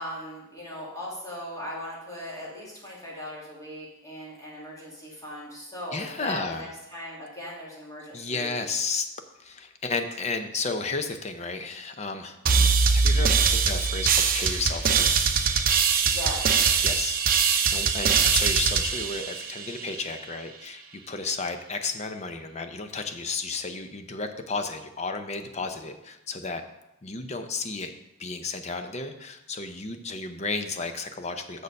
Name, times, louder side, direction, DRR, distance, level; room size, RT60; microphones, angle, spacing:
voice 1, 0.0-8.6 16.0-16.4, left 1 dB, 15° left, -6 dB, 2.5 m, -38 dB
voice 2, 5.9-6.7 8.1-9.1 9.4-12.4 12.9-15.3 16.8-26.6 27.0-27.9 28.2-31.6, left 4 dB, 35° left, 7 dB, 0.6 m, -33 dB
sound 1, 12.5-20.0, right 5 dB, 45° right, 0.7 m, -22 dB
6.7 x 6.6 x 5.2 m, 0.90 s
head